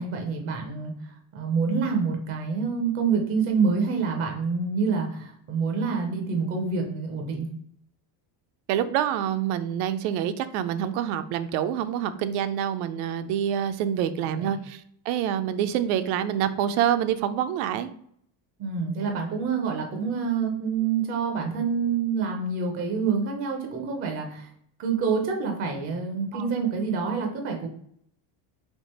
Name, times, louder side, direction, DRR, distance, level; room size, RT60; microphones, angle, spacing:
voice 1, 0.0-7.5 14.4-14.5 18.6-24.5 24.8-27.7, right 5 dB, 30° right, 2 dB, 0.4 m, -27 dB
voice 2, 8.7-17.9 26.3-26.5, right 10 dB, 80° right, 11 dB, 0.6 m, -26 dB
3.5 x 2.7 x 4.1 m, 0.66 s
cardioid pair, 170°, 49 cm